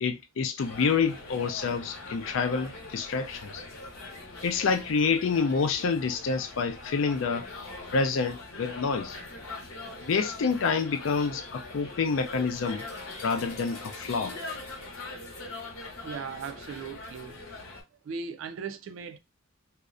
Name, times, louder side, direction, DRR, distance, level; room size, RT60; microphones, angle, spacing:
voice 1, 0.0-3.6 4.4-7.5 7.9-9.2 10.1-12.8 13.2-14.3, left 5 dB, 65° left, 0.4 m, -28 dB
sound 1, 0.6-17.8, left 2 dB, 85° left, 0.8 m, -42 dB
voice 2, 16.0-17.4 18.0-19.2, right 5 dB, 65° right, 0.3 m, -38 dB
2.5 x 2.1 x 2.4 m
head